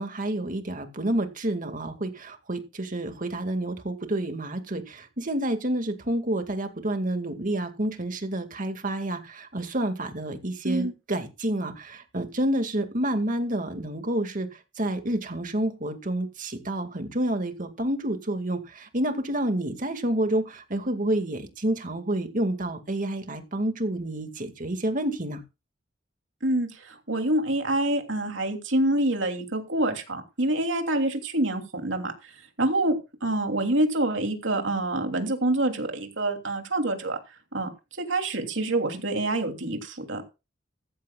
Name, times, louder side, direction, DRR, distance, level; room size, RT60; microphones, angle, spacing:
voice 1, 0.0-14.5 14.8-25.4, right 1 dB, 45° right, 2.2 m, -29 dB
voice 2, 26.4-32.1 32.6-32.9 33.2-37.2 37.5-37.7 38.0-40.3, right 1 dB, 80° right, 3.1 m, -26 dB
15.0 x 14.5 x 2.4 m
head